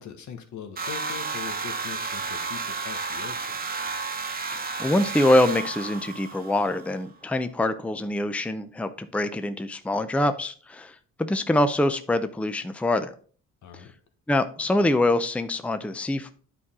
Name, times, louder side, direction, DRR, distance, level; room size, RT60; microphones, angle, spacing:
voice 1, 0.0-3.6 13.6-13.9, left 8 dB, 75° left, 6 dB, 1.4 m, -41 dB
sound 1, 0.8-6.9, right 4 dB, 30° right, 1.1 m, -32 dB
voice 2, 4.5-13.1 13.7-13.8 14.3-16.3, left 1 dB, 5° left, 10 dB, 0.5 m, -24 dB
9.9 x 4.7 x 3.6 m, 0.43 s
cardioid pair, 90°, 30 cm